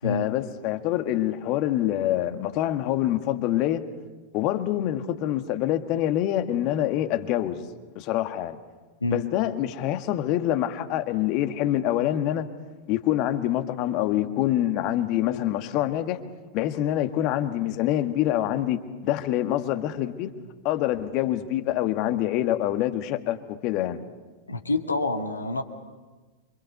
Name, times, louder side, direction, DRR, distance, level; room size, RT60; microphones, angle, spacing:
voice 1, 0.0-3.8 4.3-7.7 8.0-8.6 9.1-12.5 12.9-16.2 16.5-20.3 20.6-24.0, left 13 dB, 40° left, 8 dB, 1.8 m, -26 dB
voice 2, 24.5-25.6, left 2 dB, 80° left, 5 dB, 2.3 m, -27 dB
28.5 x 25.5 x 6.8 m, 1.3 s
figure-of-eight pair, 90°, 0 cm